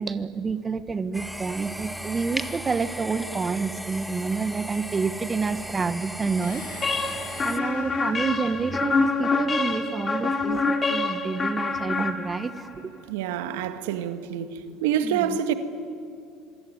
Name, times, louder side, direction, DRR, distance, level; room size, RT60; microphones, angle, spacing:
voice 1, 0.0-6.9 7.4-12.7 15.0-15.4, right 4 dB, 25° right, 1.5 m, -28 dB
sound 1, 1.1-7.6, right 1 dB, ahead, 1.7 m, -36 dB
sound 2, 6.4-9.8, left 5 dB, 80° left, 3.8 m, -45 dB
sound 3, 6.8-12.7, left 3 dB, 30° left, 2.9 m, -26 dB
voice 2, 13.0-15.5, right 9 dB, 80° right, 1.9 m, -27 dB
26.0 x 23.5 x 9.5 m
hypercardioid pair, 80°, 0 cm